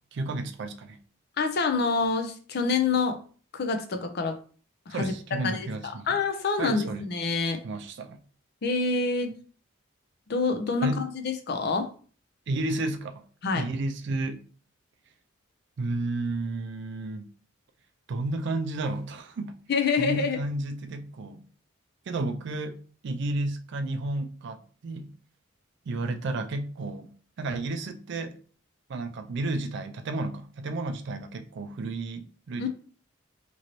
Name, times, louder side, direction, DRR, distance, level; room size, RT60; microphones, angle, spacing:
voice 1, 0.1-1.0 4.9-6.1 6.6-7.1 7.6-8.2 10.8-11.0 12.5-13.2 13.5-14.4 15.8-17.3 18.1-19.6 20.0-21.5 22.1-25.1 25.9-28.4 28.9-32.7, right 2 dB, 55° right, 0.4 m, -32 dB
voice 2, 1.4-3.2 3.5-4.4 4.9-5.1 5.4-7.6 8.6-9.3 10.3-11.9 13.4-13.6 19.7-20.4 32.6-32.7, left 4 dB, 50° left, 0.5 m, -27 dB
3.0 x 2.6 x 2.9 m
head